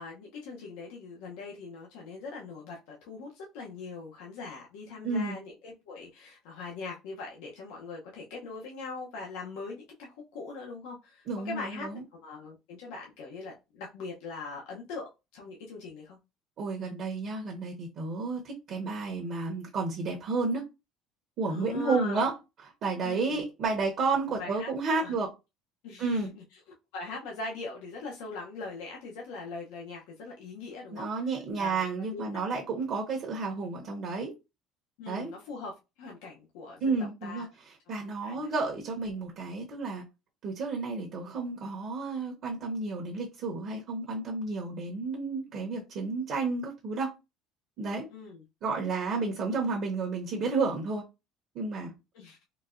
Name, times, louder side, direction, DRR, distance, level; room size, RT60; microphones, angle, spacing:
voice 1, 0.0-16.2 21.5-22.3 23.0-23.5 24.3-25.2 25.8-26.4 26.9-31.1 31.6-31.8 32.1-32.2 35.0-37.5 38.2-38.5 48.1-48.4 52.1-52.4, left 3 dB, 90° left, 0.7 m, -41 dB
voice 2, 5.0-5.3 11.3-12.0 16.6-20.6 21.4-22.3 22.8-25.3 26.0-26.3 30.9-34.3 35.1-35.3 36.8-37.5 37.9-40.0 40.4-47.1 47.8-48.1 48.6-51.0 51.5-51.9, right 4 dB, 50° right, 0.8 m, -31 dB
3.9 x 2.2 x 2.5 m
cardioid pair, 140°, 0 cm